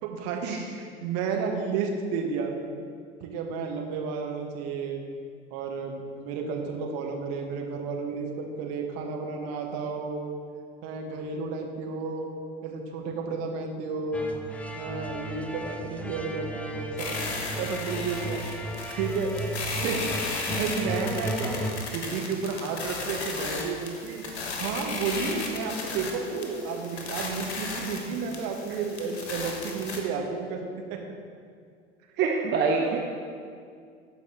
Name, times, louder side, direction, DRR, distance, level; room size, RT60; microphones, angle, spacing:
voice 1, 0.0-2.5 3.2-5.0 5.5-10.2 10.8-12.3 12.6-14.3 14.8-17.1 17.6-18.4 19.0-19.4 19.8-21.5 21.9-30.6 30.9-31.0 32.8-33.0, right 5 dB, 45° right, 2 dB, 1.2 m, -32 dB
sound 1, 14.1-21.7, right 1 dB, 5° left, 0.3 m, -35 dB
sound 2, 17.0-30.0, left 3 dB, 70° left, 1.2 m, -35 dB
voice 2, 32.2-33.0, right 4 dB, 30° right, 0 dB, 0.7 m, -25 dB
13.5 x 4.9 x 3.5 m, 2.2 s
figure-of-eight pair, 75°, 34 cm